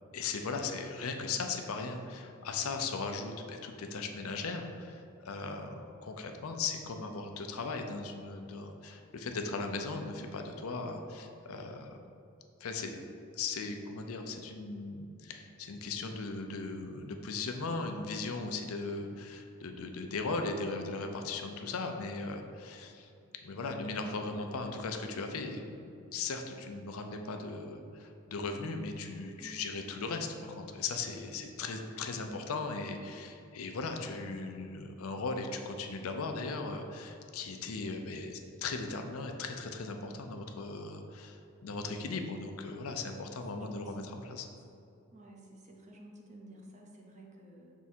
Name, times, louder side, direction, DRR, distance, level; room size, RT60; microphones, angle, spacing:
voice 1, 0.1-12.0 12.6-13.0 13.3-23.1 23.4-44.5, left 3 dB, 75° left, 4 dB, 0.5 m, -38 dB
voice 2, 18.6-19.1 29.4-30.0 43.5-44.4 45.1-47.7, right 1 dB, 30° right, 0 dB, 0.7 m, -53 dB
6.0 x 3.6 x 4.3 m, 2.5 s
head